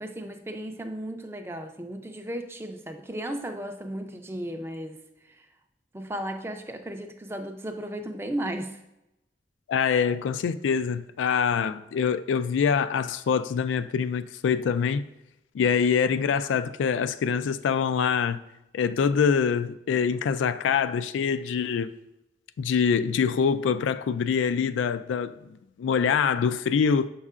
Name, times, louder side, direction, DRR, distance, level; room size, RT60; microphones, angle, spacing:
voice 1, 0.0-5.5 5.9-8.8, right 1 dB, 15° right, 0.4 m, -35 dB
voice 2, 9.7-15.0 15.5-18.4 18.7-21.9 22.6-27.1, left 6 dB, 90° left, 0.3 m, -25 dB
7.2 x 5.5 x 2.4 m
head